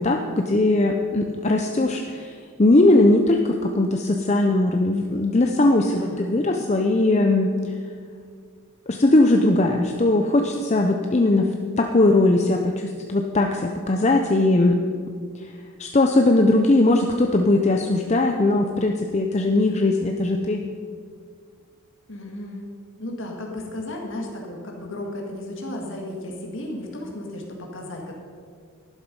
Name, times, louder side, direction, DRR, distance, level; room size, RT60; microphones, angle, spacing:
voice 1, 0.0-2.3 2.6-7.5 8.9-14.8 15.8-20.6, left 2 dB, 30° left, 3 dB, 0.6 m, -19 dB
voice 2, 5.7-6.3 22.1-22.7 23.0-28.2, left 1 dB, 60° left, 0 dB, 1.9 m, -34 dB
11.5 x 11.5 x 5.3 m, 2.1 s
head